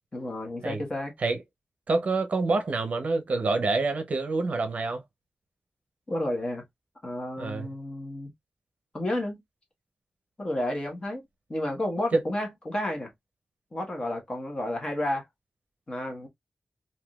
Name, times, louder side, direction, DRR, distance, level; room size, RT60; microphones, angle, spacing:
voice 1, 0.1-1.1 6.1-6.6 7.0-8.3 8.9-9.4 10.4-11.2 11.5-13.1 13.7-15.2 15.9-16.3, left 1 dB, 30° left, 1.2 m, -31 dB
voice 2, 1.9-5.0 7.4-7.7, right 3 dB, 55° right, 0.6 m, -27 dB
3.6 x 2.6 x 2.3 m
wide cardioid pair, 135°, 3 cm